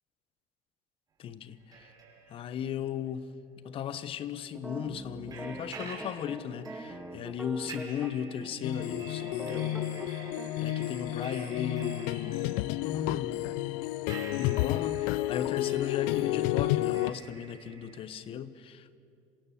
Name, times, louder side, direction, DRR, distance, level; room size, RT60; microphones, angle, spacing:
voice 1, 1.2-1.9 2.3-3.3 3.6-10.1 10.6-13.6 14.4-19.0, left 8 dB, 45° left, 1.1 m, -37 dB
sound 1, 1.5-3.6 4.0-4.1 5.3-18.1, right 5 dB, 30° right, 6.1 m, -50 dB
sound 2, 4.5-8.1 8.4-8.5 8.9-10.5, right 1 dB, 5° right, 1.6 m, -42 dB
sound 3, 8.6-17.1, left 16 dB, 80° left, 0.5 m, -31 dB
26.5 x 16.5 x 8.6 m
cardioid pair, 135°, 13 cm